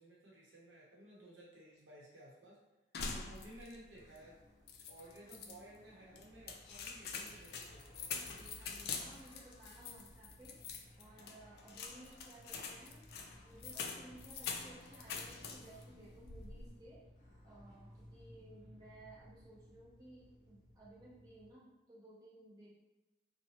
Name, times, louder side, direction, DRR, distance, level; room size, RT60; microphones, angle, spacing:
voice 1, 0.0-2.6 3.1-4.4 4.9-8.2, right 1 dB, 85° right, -5 dB, 0.9 m, -56 dB
sound 1, 2.9-3.9 4.2-4.3 4.7-5.6 6.2-15.8 16.2-16.7, left 5 dB, 55° left, 0.3 m, -45 dB
voice 2, 2.9-3.4 5.2-5.6 8.2-13.1 13.4-17.0 17.4-22.8, right 1 dB, 20° right, -9 dB, 0.9 m, -58 dB
sound 2, 3.9-21.5, equal, 40° left, 0.7 m, -60 dB
2.9 x 2.2 x 2.8 m, 1.0 s
head